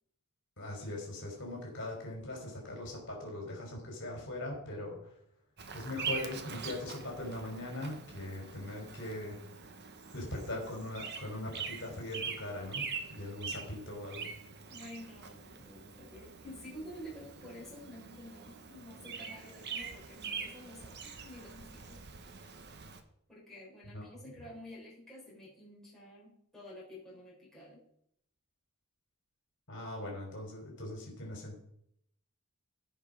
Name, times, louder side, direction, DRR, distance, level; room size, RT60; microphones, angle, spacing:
voice 1, 0.6-5.1 5.7-9.4 10.1-14.3 23.9-24.3 29.7-31.6, left 1 dB, 55° left, 0 dB, 3.9 m, -41 dB
Bird vocalization bird call bird song, 5.6-23.0, right 5 dB, 50° right, 1.1 m, -44 dB
voice 2, 14.7-22.1 23.3-27.8, equal, ahead, -6 dB, 3.9 m, -50 dB
15.5 x 5.4 x 5.2 m, 0.72 s
head